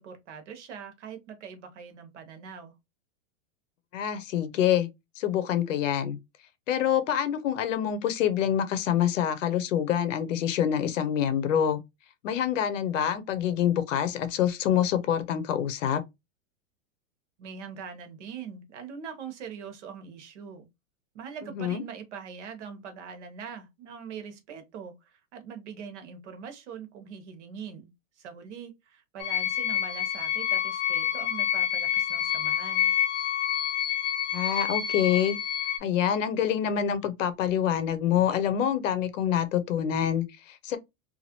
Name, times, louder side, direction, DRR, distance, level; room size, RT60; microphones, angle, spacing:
voice 1, 0.0-2.7 17.4-20.7 21.1-27.9 28.2-32.9, right 6 dB, 60° right, 0.9 m, -42 dB
voice 2, 3.9-4.9 5.2-6.2 6.7-11.8 12.2-16.0 21.4-21.8 34.3-35.4 35.8-40.8, left 9 dB, 70° left, 0.7 m, -26 dB
sound 1, 29.2-35.8, left 10 dB, 35° left, 0.5 m, -28 dB
2.7 x 2.4 x 2.8 m
supercardioid pair, 175°, 39 cm